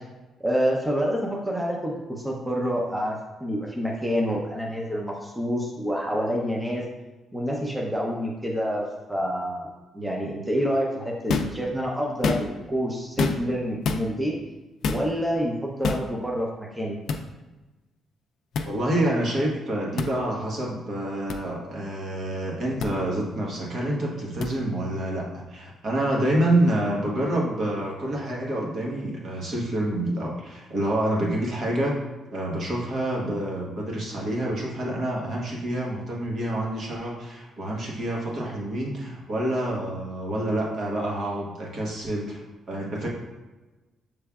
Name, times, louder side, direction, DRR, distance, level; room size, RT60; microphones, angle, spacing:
voice 1, 0.4-6.8 7.3-9.7 9.9-14.4 14.8-17.0, equal, 10° right, -2 dB, 0.7 m, -27 dB
sound 1, 11.3-11.6 12.1-12.7 13.2-13.6 13.8-14.0 14.8-15.1 15.8-16.1 17.1-17.2 18.5-18.7 20.0-20.1 21.3-21.4 22.8-22.9 24.4-24.5, left 4 dB, 70° left, 0.4 m, -26 dB
voice 2, 18.7-32.0 32.3-42.4 42.7-43.1, right 1 dB, 55° right, -2 dB, 1.2 m, -27 dB
6.8 x 3.2 x 2.4 m, 1.2 s
cardioid pair, 90°, 0 cm